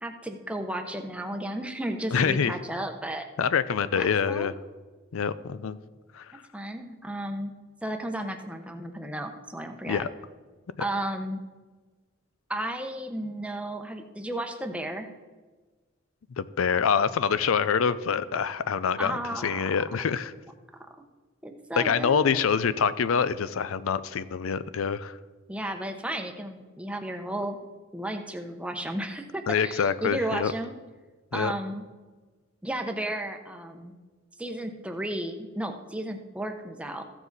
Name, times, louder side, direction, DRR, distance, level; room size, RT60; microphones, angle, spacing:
voice 1, 0.0-3.3 3.9-4.5 6.5-7.5 7.8-10.0 10.8-11.4 12.5-15.1 19.0-19.8 21.4-22.4 25.5-27.6 27.9-30.7 31.3-31.8 32.6-33.9 34.4-37.0, right 1 dB, 5° right, 5 dB, 0.8 m, -33 dB
voice 2, 2.1-2.5 3.4-4.5 5.1-5.8 6.1-6.3 9.9-10.1 16.4-20.3 21.8-25.2 29.5-30.5 31.3-31.5, left 6 dB, 90° left, 15 dB, 0.5 m, -26 dB
14.5 x 7.3 x 4.0 m, 1.3 s
head